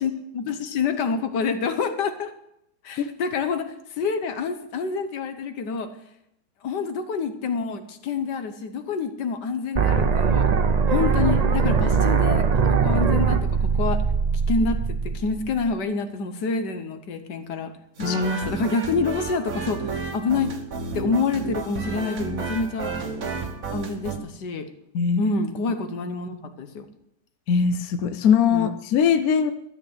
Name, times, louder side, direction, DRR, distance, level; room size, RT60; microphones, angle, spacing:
voice 1, 0.0-2.3 2.8-5.9 6.6-10.5 10.9-14.0 14.5-17.7 18.0-20.5 20.9-22.9 23.7-24.7 25.2-26.9 28.5-28.7, left 4 dB, 80° left, 9 dB, 1.7 m, -27 dB
sound 1, 9.8-15.7, right 5 dB, 85° right, 0.3 m, -21 dB
sound 2, 18.0-24.2, right 4 dB, 55° right, 1.7 m, -32 dB
voice 2, 27.5-29.5, left 7 dB, 65° left, 10 dB, 1.1 m, -21 dB
13.0 x 6.8 x 8.0 m, 0.79 s
omnidirectional pair, 1.8 m